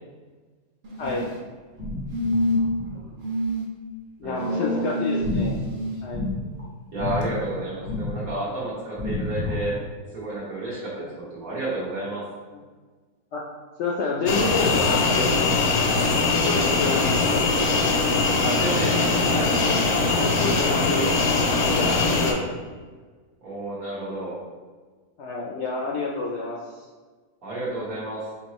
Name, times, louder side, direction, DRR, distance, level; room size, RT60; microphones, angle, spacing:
sound 1, 0.8-1.4 2.1-2.8 3.2-3.7 4.4-6.0 7.2-7.3, equal, 55° right, 0.6 m, -27 dB
voice 1, 1.0-1.3 4.2-5.6 6.0-6.2 10.9-11.1 12.5-12.6 13.3-13.4 13.8-15.3 16.4-17.5 20.1-22.6 25.2-26.9, left 3 dB, 65° left, -2 dB, 0.7 m, -29 dB
sound 2, 1.0-1.5 1.8-3.5 5.2-6.6 7.0-7.5 7.8-8.5 9.0-9.9, left 2 dB, 25° right, 1.0 m, -30 dB
voice 2, 4.2-4.9 6.9-9.8 10.1-12.2 18.4-19.5 23.4-24.4 27.4-28.3, right 2 dB, 75° right, -7 dB, 1.8 m, -31 dB
sound 3, 14.3-22.3, left 3 dB, 85° left, 1.1 m, -21 dB
4.5 x 2.9 x 2.9 m, 1.4 s
omnidirectional pair, 1.6 m